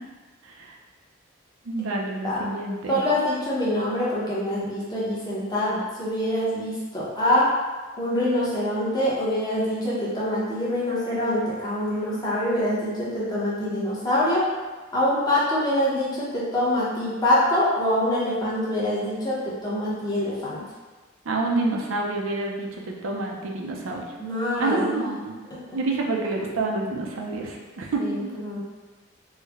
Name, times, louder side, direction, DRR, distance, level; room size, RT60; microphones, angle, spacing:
voice 1, 0.4-0.7 1.6-3.0 21.3-24.0 24.6-25.3 25.7-28.3, right 2 dB, 80° right, 0 dB, 0.5 m, -28 dB
voice 2, 2.9-7.4 8.0-14.4 14.9-19.4 19.6-20.6 24.2-24.9 25.7-25.8 28.0-28.6, left 1 dB, 20° left, -8 dB, 0.9 m, -25 dB
3.2 x 2.1 x 3.5 m, 1.3 s
head